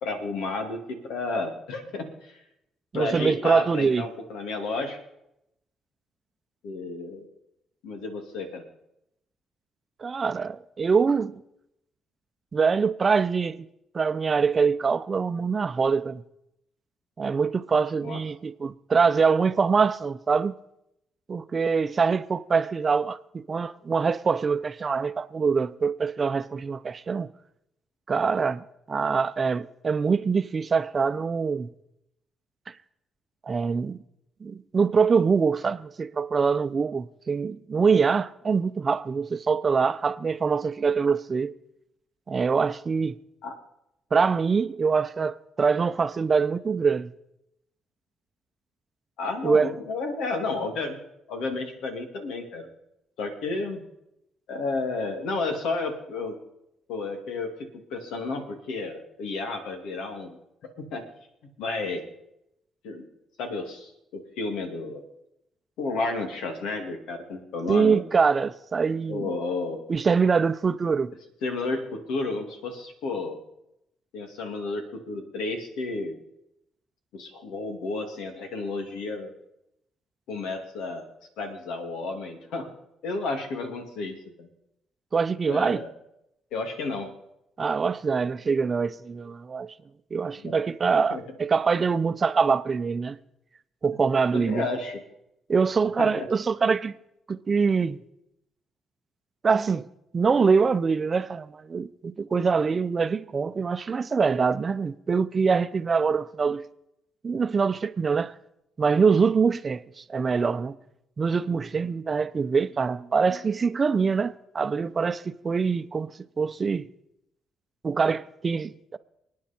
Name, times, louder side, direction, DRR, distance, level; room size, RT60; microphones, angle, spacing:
voice 1, 0.0-2.4 2.9-5.0 6.6-7.3 7.8-8.6 18.0-18.2 43.4-43.5 49.2-51.0 51.3-52.7 53.2-53.8 54.5-56.4 56.9-60.4 60.8-61.0 61.6-62.0 62.8-63.0 63.4-65.0 65.8-68.0 69.1-69.8 71.4-73.4 74.1-76.2 77.1-79.3 80.3-81.1 81.4-82.7 83.0-84.5 85.5-85.9 86.5-87.1 90.4-90.6 91.1-91.2 94.3-95.0 96.0-96.3, left 3 dB, 90° left, 2.5 m, -32 dB
voice 2, 2.9-4.0 10.0-11.4 12.5-13.7 13.9-16.2 17.2-20.6 21.3-27.3 28.1-31.7 33.5-34.0 34.4-41.5 42.3-43.2 44.1-47.1 49.4-49.7 67.7-69.3 69.9-71.1 85.1-85.8 87.6-89.7 90.1-93.2 93.8-94.6 95.5-96.9 97.3-98.0 99.4-99.9 100.1-106.6 107.2-108.3 108.8-110.8 111.2-116.1 116.4-116.9 117.8-119.0, right 5 dB, 35° right, 0.6 m, -24 dB
28.0 x 9.5 x 4.4 m
cardioid pair, 90°, 0 cm